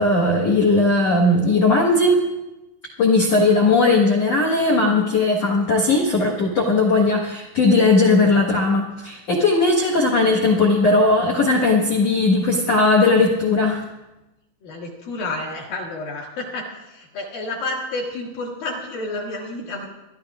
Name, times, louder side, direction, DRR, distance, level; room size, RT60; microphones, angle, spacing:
voice 1, 0.0-2.3 3.0-13.8, left 3 dB, 90° left, -2 dB, 1.4 m, -18 dB
voice 2, 14.6-19.9, left 2 dB, 60° left, -2 dB, 2.7 m, -30 dB
26.0 x 12.0 x 2.5 m, 0.98 s
omnidirectional pair, 5.5 m